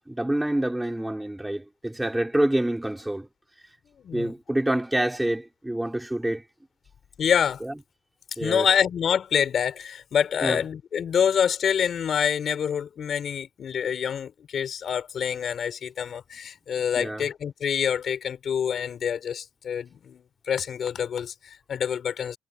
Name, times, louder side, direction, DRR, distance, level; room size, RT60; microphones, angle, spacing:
voice 1, 0.1-3.3 4.1-6.4 7.6-7.7 8.4-8.7 10.4-10.6 17.0-17.2, right 1 dB, 10° right, 4.3 m, -27 dB
voice 2, 4.0-4.3 7.2-7.6 8.4-22.4, left 8 dB, 60° left, 5.7 m, -26 dB
cardioid pair, 90°, 0 cm